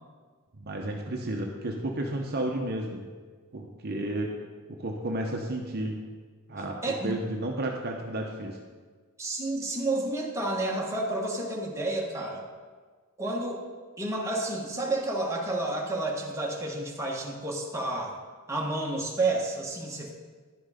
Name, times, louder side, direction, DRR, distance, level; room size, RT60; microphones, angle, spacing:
voice 1, 0.5-3.0 3.5-4.3 4.7-6.0 6.5-8.6, right 1 dB, 45° right, 1 dB, 0.8 m, -32 dB
voice 2, 6.8-7.1 9.2-12.5 13.2-13.7 14.0-18.2 18.5-20.1, right 2 dB, 15° right, -2 dB, 1.3 m, -30 dB
10.5 x 6.1 x 5.0 m, 1.5 s
head